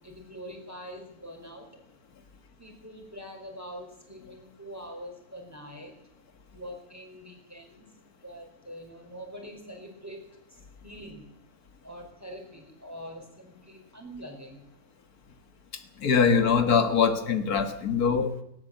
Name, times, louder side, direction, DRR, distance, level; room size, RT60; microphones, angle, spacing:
voice 1, 0.0-1.7 2.6-5.9 6.5-7.9 8.2-10.2 10.5-11.2 11.8-14.7, equal, 10° right, 2 dB, 4.7 m, -44 dB
voice 2, 16.0-18.4, left 6 dB, 85° left, 8 dB, 2.0 m, -23 dB
18.5 x 18.5 x 7.8 m, 0.79 s
omnidirectional pair, 1.5 m